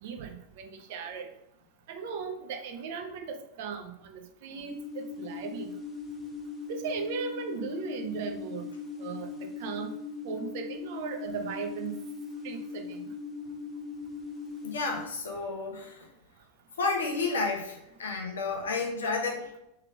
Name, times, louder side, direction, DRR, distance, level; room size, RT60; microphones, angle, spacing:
voice 1, 0.0-1.3 1.9-5.7 6.7-8.7 9.0-9.9 10.2-12.0 12.4-13.0, right 5 dB, 50° right, 6 dB, 0.6 m, -37 dB
sound 1, 4.7-15.1, left 5 dB, 10° left, 0.8 m, -40 dB
voice 2, 14.6-16.1 16.8-19.5, left 3 dB, 65° left, 1 dB, 0.8 m, -31 dB
3.4 x 3.3 x 4.6 m, 0.83 s
figure-of-eight pair, 90°, 0 cm